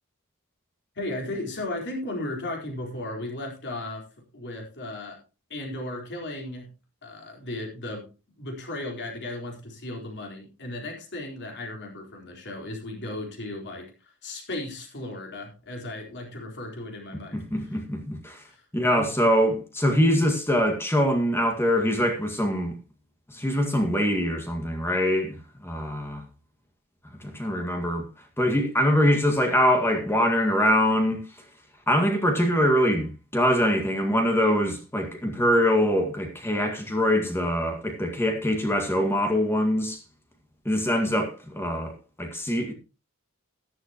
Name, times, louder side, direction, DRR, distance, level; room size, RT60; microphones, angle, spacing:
voice 1, 0.9-4.1 4.3-5.2 5.5-6.7 7.0-8.1 8.4-17.8 18.4-18.6 18.9-19.1 27.3-27.6, left 1 dB, 50° left, 4.3 m, -35 dB
voice 2, 17.3-18.4 18.7-22.7 23.3-26.2 27.2-28.1 28.4-31.2 31.9-40.0 40.7-42.7, equal, 10° left, 1.9 m, -23 dB
13.5 x 11.5 x 3.0 m
head